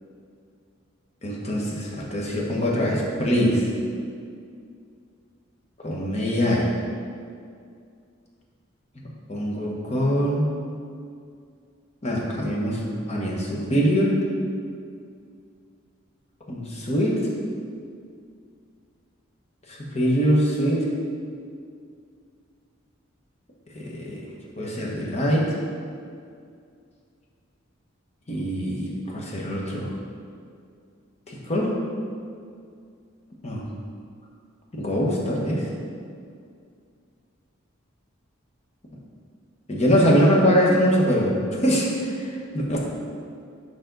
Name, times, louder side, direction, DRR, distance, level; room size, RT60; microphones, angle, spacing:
voice 1, 1.2-3.7 5.8-6.7 9.0-10.5 12.0-14.2 16.5-17.2 19.7-20.9 23.7-24.2 24.6-25.5 28.3-29.9 31.3-31.7 33.4-33.6 34.7-35.7 39.7-42.8, equal, 30° left, -3 dB, 1.1 m, -23 dB
6.9 x 5.3 x 3.9 m, 2.3 s
head